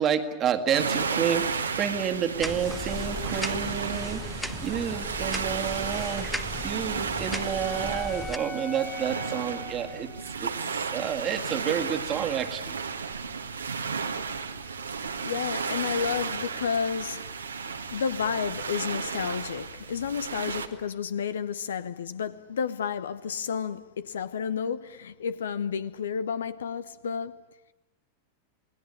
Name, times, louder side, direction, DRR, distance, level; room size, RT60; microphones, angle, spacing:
voice 1, 0.0-6.3 6.6-10.1 10.4-12.8, right 8 dB, 30° right, 1.9 m, -30 dB
sound 1, 0.7-20.7, right 5 dB, 75° right, 1.7 m, -33 dB
sound 2, 2.4-8.4, left 1 dB, 5° left, 1.2 m, -37 dB
Wind instrument woodwind instrument, 6.5-10.7, left 2 dB, 20° left, 1.9 m, -42 dB
voice 2, 15.0-27.5, left 7 dB, 65° left, 0.9 m, -31 dB
28.5 x 19.0 x 8.9 m
figure-of-eight pair, 90°, 0 cm